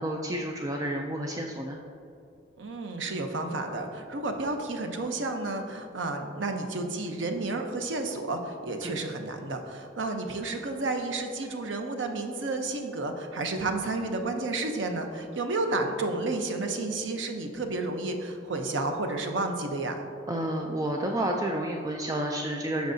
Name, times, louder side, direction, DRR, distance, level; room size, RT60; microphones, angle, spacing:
voice 1, 0.0-1.8 8.8-9.0 20.3-22.9, right 1 dB, 20° right, 1 dB, 0.4 m, -30 dB
voice 2, 2.6-20.0, right 2 dB, 90° right, 5 dB, 0.8 m, -31 dB
13.0 x 4.6 x 2.7 m, 2.6 s
head